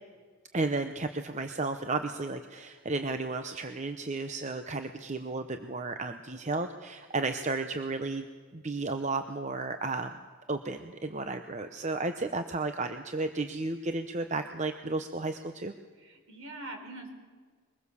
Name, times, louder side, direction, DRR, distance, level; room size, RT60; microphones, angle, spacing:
voice 1, 0.5-8.3 8.5-10.2 10.5-15.7, right 3 dB, 30° right, 7 dB, 0.8 m, -33 dB
voice 2, 15.9-17.1, right 2 dB, 65° right, 4 dB, 4.0 m, -43 dB
23.0 x 20.5 x 7.1 m, 1.5 s
head